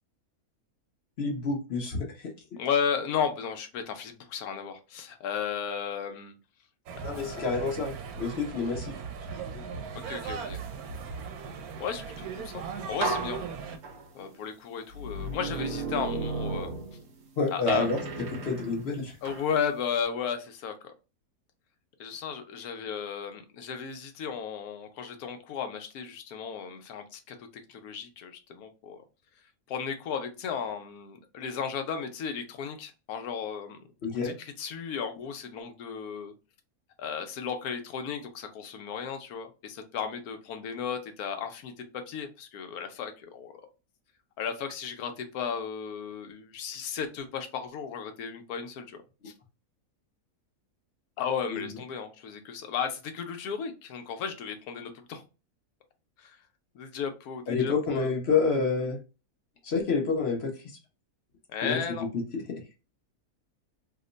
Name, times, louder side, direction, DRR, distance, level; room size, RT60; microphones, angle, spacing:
voice 1, 1.2-2.3 7.0-9.0 9.5-9.6 17.4-18.0 18.4-19.2 34.0-34.3 51.5-51.7 57.5-59.0 59.6-60.7 61.6-62.1 62.3-62.6, left 4 dB, 50° left, 1 dB, 1.0 m, -28 dB
voice 2, 2.6-6.4 7.0-7.5 10.1-10.6 11.8-13.4 14.1-16.7 17.5-17.9 19.2-20.9 22.0-29.0 29.7-33.8 34.1-36.3 37.0-43.6 44.4-49.3 51.2-55.2 56.2-56.4 56.7-58.1 61.5-62.0, left 7 dB, 85° left, 7 dB, 1.1 m, -34 dB
sound 1, 6.9-13.8, right 6 dB, 85° right, 1.1 m, -38 dB
sound 2, 12.4-12.6 13.0-14.3 14.9-17.3 17.7-19.5, right 3 dB, 65° right, 1.1 m, -34 dB
3.0 x 2.1 x 3.7 m, 0.31 s
omnidirectional pair, 1.5 m